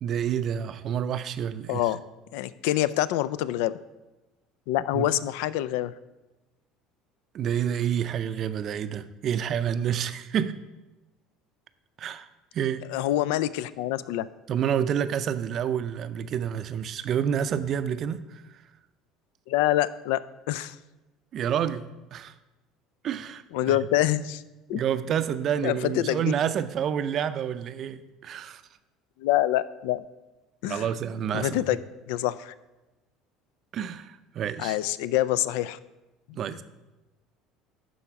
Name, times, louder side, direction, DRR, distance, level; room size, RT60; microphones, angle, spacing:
voice 1, 0.0-1.9 4.9-5.1 7.3-10.6 12.0-12.8 14.5-18.6 21.3-21.9 22.1-22.3 23.0-23.8 24.7-28.6 30.6-31.8 33.7-34.8 36.4-36.6, right 9 dB, 45° right, 12 dB, 0.4 m, -29 dB
voice 2, 1.7-2.0 2.3-3.7 4.7-5.9 12.9-14.3 19.5-20.8 23.5-24.4 24.7-24.8 25.6-26.3 29.2-30.0 30.6-30.9 31.3-31.8 32.1-32.5 34.6-35.8 36.3-36.4, left 14 dB, 85° left, 17 dB, 0.3 m, -26 dB
11.5 x 4.1 x 4.7 m, 1.1 s
cardioid pair, 135°, 0 cm